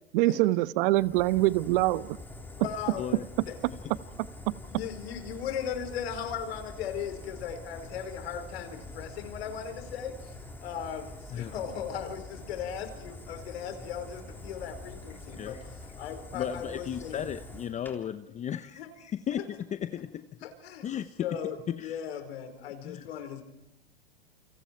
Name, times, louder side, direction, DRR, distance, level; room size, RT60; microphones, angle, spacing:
voice 1, 0.1-2.2 4.5-4.6, right 18 dB, 55° right, 1.2 m, -24 dB
Fire, 1.0-18.0, left 2 dB, 5° left, 3.6 m, -45 dB
voice 2, 2.5-3.0 3.5-3.6 4.8-10.4 10.6-17.3 18.8-18.9 19.3-19.4 20.4-20.9 21.2-23.4, left 8 dB, 75° left, 4.8 m, -37 dB
voice 3, 15.3-15.6 16.3-19.4 19.7-20.3 20.8-21.3 21.7-22.0 22.8-23.1, left 9 dB, 20° left, 0.8 m, -35 dB
29.5 x 25.5 x 4.6 m
hypercardioid pair, 125°, 31 cm